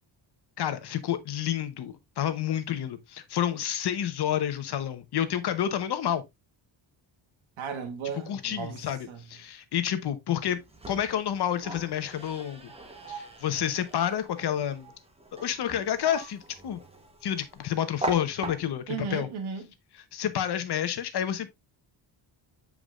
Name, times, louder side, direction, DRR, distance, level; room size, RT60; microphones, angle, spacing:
voice 1, 0.6-6.2 8.3-10.6 10.9-12.7 13.1-14.9 15.3-16.8 17.2-19.3 20.1-21.5, left 10 dB, 55° left, 0.9 m, -29 dB
voice 2, 7.6-9.2 18.9-19.7, right 6 dB, 75° right, 1.3 m, -35 dB
sound 1, 10.5-19.0, right 2 dB, 10° right, 1.0 m, -41 dB
8.3 x 4.8 x 2.4 m
wide cardioid pair, 170°, 47 cm